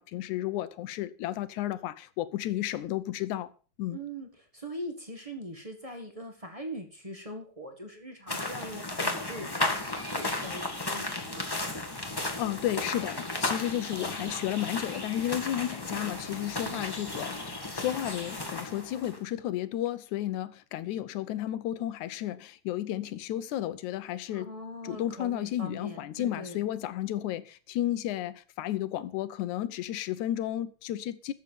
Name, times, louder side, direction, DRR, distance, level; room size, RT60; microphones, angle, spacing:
voice 1, 0.0-3.5 3.8-4.0 12.4-24.5 24.8-31.3, left 13 dB, 75° left, 2.0 m, -33 dB
voice 2, 3.9-4.3 4.5-11.6 15.3-15.7 16.0-16.1 16.6-16.9 24.3-26.6, equal, 25° right, 0.7 m, -42 dB
sound 1, 8.3-19.2, left 2 dB, 25° left, 0.5 m, -34 dB
12.5 x 7.4 x 6.8 m
omnidirectional pair, 3.8 m